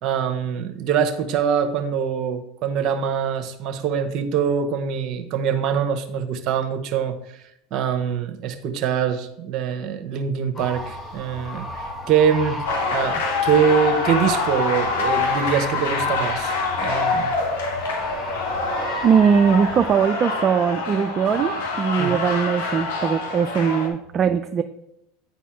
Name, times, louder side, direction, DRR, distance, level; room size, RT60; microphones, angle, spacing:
voice 1, 0.0-7.1 7.7-12.6 12.9-17.3 22.0-22.1, right 7 dB, 50° right, 7 dB, 0.9 m, -24 dB
sound 1, 10.5-20.0, left 1 dB, 30° left, 1.2 m, -35 dB
sound 2, 12.6-23.9, left 3 dB, 75° left, 1.2 m, -25 dB
voice 2, 19.0-24.6, right 7 dB, 35° right, 7 dB, 0.4 m, -20 dB
9.2 x 4.2 x 3.6 m, 0.79 s
hypercardioid pair, 85°, 0 cm